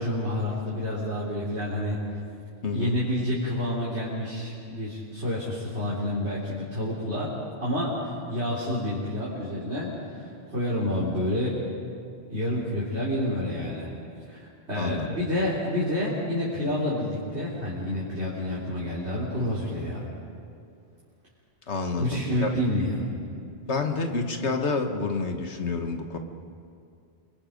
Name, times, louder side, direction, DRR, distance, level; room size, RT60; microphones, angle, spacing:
voice 1, 0.0-2.0 2.7-7.3 7.6-8.0 8.3-11.6 12.3-13.9 14.3-20.1 22.0-23.1, left 1 dB, 75° right, -7 dB, 4.2 m, -29 dB
voice 2, 2.6-3.0 14.7-15.1 21.7-22.5 23.7-26.2, left 3 dB, 80° left, 5 dB, 1.8 m, -28 dB
27.5 x 23.0 x 5.3 m, 2.4 s
omnidirectional pair, 1.1 m